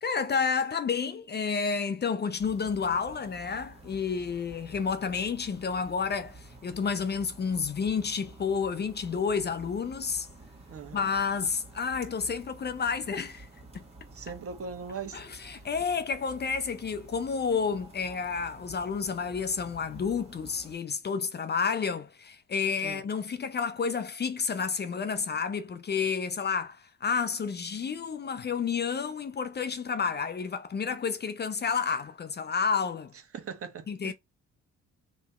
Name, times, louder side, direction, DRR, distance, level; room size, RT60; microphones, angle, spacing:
voice 1, 0.0-10.3 10.9-13.5 13.7-13.9 15.1-33.1 33.9-34.1, left 5 dB, 35° left, 0.6 m, -30 dB
sound 1, 2.4-20.8, right 2 dB, 20° right, 1.8 m, -50 dB
voice 2, 10.7-11.0 14.1-15.4 22.8-23.0 33.3-34.1, right 5 dB, 50° right, 1.2 m, -40 dB
3.4 x 3.0 x 4.1 m
cardioid pair, 90°, 30 cm